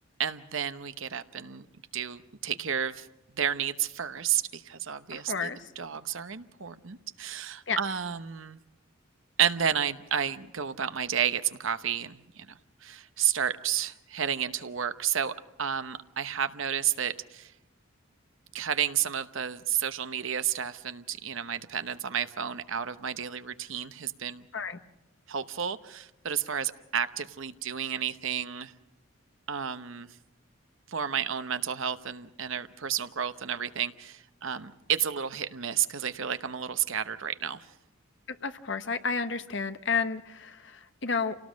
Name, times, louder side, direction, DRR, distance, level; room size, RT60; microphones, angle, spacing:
voice 1, 0.2-1.7 1.9-3.1 3.3-5.5 5.8-8.6 9.4-17.5 18.5-24.4 25.3-28.7 29.5-30.1 30.9-37.7, right 8 dB, 65° right, 11 dB, 0.9 m, -31 dB
voice 2, 5.1-5.6 7.7-7.8 24.5-24.8 38.3-41.3, left 5 dB, 55° left, 9 dB, 1.1 m, -31 dB
27.5 x 18.5 x 6.3 m, 0.95 s
head